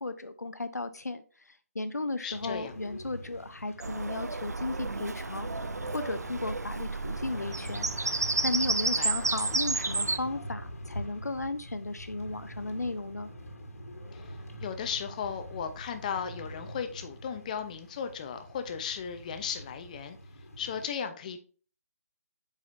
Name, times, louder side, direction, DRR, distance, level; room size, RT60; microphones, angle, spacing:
voice 1, 0.0-13.3, left 2 dB, 90° left, 9 dB, 0.6 m, -35 dB
voice 2, 2.2-2.7 9.0-9.1 14.1-14.2 14.6-20.2 20.6-21.4, left 7 dB, 30° left, 8 dB, 0.8 m, -36 dB
sound 1, 2.3-20.9, equal, 65° left, 1.7 m, -44 dB
Bird vocalization bird call bird song, 3.8-10.2, right 3 dB, 85° right, 0.5 m, -31 dB
7.9 x 4.9 x 2.6 m, 0.40 s
figure-of-eight pair, 150°, 9 cm